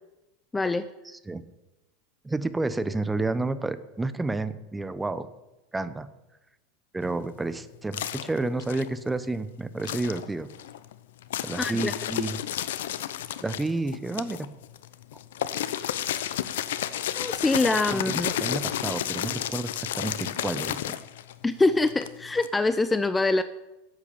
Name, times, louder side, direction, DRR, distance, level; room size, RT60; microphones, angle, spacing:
voice 1, 0.5-0.9 11.6-11.9 17.2-18.3 21.4-23.4, left 3 dB, 15° left, 12 dB, 0.6 m, -24 dB
voice 2, 2.2-5.3 5.7-6.1 6.9-10.5 11.4-12.4 13.4-14.5 17.9-21.0, right 2 dB, 10° right, 13 dB, 1.0 m, -30 dB
sound 1, 7.0-9.4 9.8-22.5, left 11 dB, 75° left, 0.8 m, -32 dB
12.0 x 8.3 x 8.7 m, 0.99 s
hypercardioid pair, 95°, 0 cm